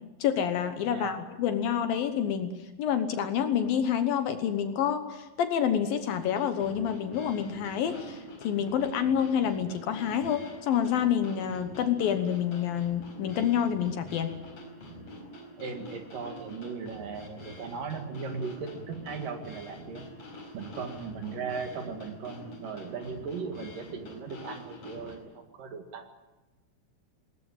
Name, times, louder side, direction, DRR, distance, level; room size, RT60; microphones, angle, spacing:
voice 1, 0.2-2.5 2.8-14.4, left 8 dB, 70° left, 8 dB, 2.3 m, -28 dB
voice 2, 0.9-1.2 15.6-20.1 20.5-25.2 25.6-26.0, right 5 dB, 55° right, 6 dB, 3.0 m, -37 dB
sound 1, 6.1-25.2, equal, 30° left, 5.5 m, -46 dB
20.0 x 20.0 x 9.1 m, 1.1 s
omnidirectional pair, 5.5 m